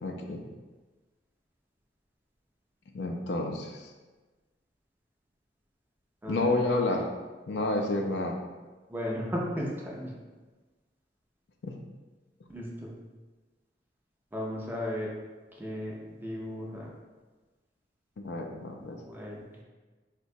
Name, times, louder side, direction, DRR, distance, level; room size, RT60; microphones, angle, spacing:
voice 1, 0.0-0.4 2.9-3.9 6.3-7.1 7.5-8.4 11.6-11.8 18.2-19.0, left 2 dB, 70° left, 2 dB, 0.4 m, -30 dB
voice 2, 6.2-6.7 8.9-10.1 12.5-12.9 14.3-15.1 15.5-16.9 18.9-19.4, equal, 10° right, -3 dB, 0.5 m, -35 dB
3.8 x 2.1 x 2.6 m, 1.3 s
head